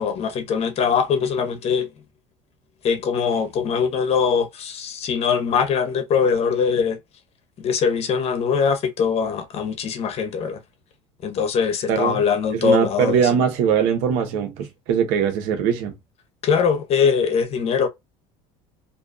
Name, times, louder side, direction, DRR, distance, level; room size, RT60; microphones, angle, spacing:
voice 1, 0.0-1.9 2.8-7.0 7.6-10.6 11.2-13.3 16.4-17.9, left 6 dB, 45° left, 0.8 m, -22 dB
voice 2, 11.9-12.2 12.6-15.9, right 7 dB, 75° right, 0.9 m, -21 dB
2.5 x 2.2 x 2.3 m
supercardioid pair, 100°, 15 cm